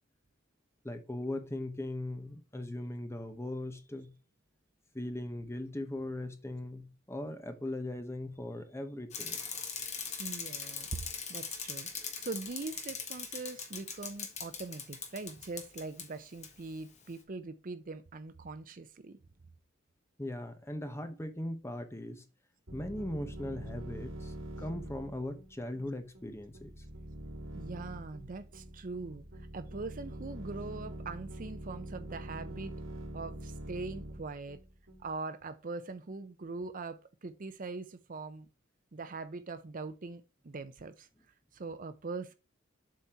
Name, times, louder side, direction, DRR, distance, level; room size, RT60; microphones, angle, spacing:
voice 1, 0.8-4.1 4.9-9.4 20.2-22.2 22.7-26.7, left 1 dB, 15° left, 0.9 m, -39 dB
Bicycle, 9.1-16.1 16.4-16.5, left 6 dB, 35° left, 1.4 m, -40 dB
voice 2, 10.2-19.2 27.5-29.3 29.5-32.7 33.1-34.6 35.0-38.5 38.9-41.1 41.5-42.3, right 3 dB, 40° right, 0.6 m, -42 dB
sound 1, 22.7-35.2, right 1 dB, 70° right, 2.8 m, -44 dB
7.5 x 4.2 x 4.5 m
head